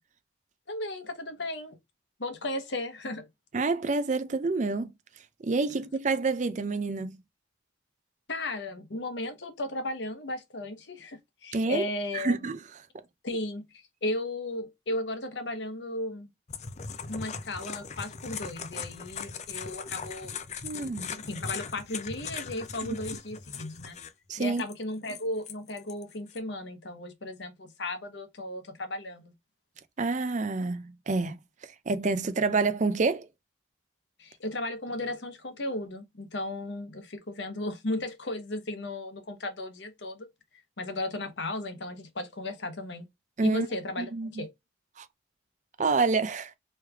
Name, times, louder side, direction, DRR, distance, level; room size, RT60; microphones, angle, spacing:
voice 1, 0.7-1.8 2.2-3.3 8.3-12.3 13.2-13.6 14.0-16.3 17.1-20.3 21.1-24.0 24.4-29.3 34.2-40.3 40.8-43.1 43.4-44.5, left 1 dB, 60° left, 1.0 m, -35 dB
voice 2, 3.5-4.9 5.4-7.2 11.5-11.9 12.1-12.6 20.6-21.1 24.3-24.6 30.0-31.4 31.9-33.3 43.4-43.7 44.0-44.3 45.0-45.1 45.8-46.5, right 3 dB, 40° right, 0.4 m, -27 dB
sound 1, 16.5-24.1 24.5-26.4, left 6 dB, 35° left, 0.4 m, -39 dB
3.2 x 3.2 x 3.4 m
head